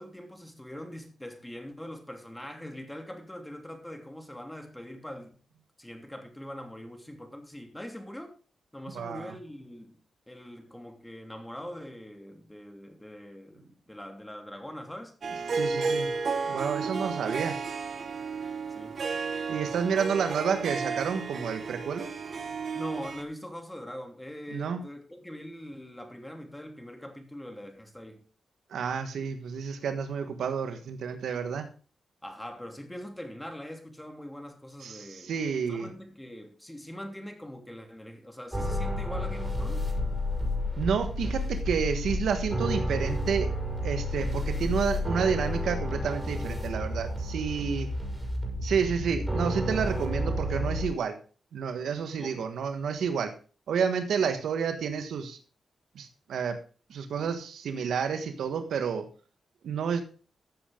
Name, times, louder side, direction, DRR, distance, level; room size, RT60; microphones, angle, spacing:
voice 1, 0.0-5.3 5.8-8.3 8.7-10.0 10.3-15.1 16.8-17.1 18.7-19.0 22.7-28.2 32.2-35.3 35.7-39.9 52.2-52.5, left 1 dB, 10° left, 2.8 m, -42 dB
voice 2, 8.9-9.3 15.5-16.1 16.5-17.6 19.5-22.1 24.5-24.8 28.7-31.7 34.8-35.9 40.8-43.5 43.8-47.9 48.6-51.2 51.5-53.3 53.7-55.4 55.9-56.6 56.9-59.1 59.6-60.0, right 6 dB, 90° right, 1.3 m, -30 dB
Harp, 15.2-23.2, right 4 dB, 65° right, 1.5 m, -33 dB
sound 1, 38.5-50.9, left 1 dB, 10° right, 5.4 m, -31 dB
14.0 x 7.6 x 3.7 m
cardioid pair, 70°, 0 cm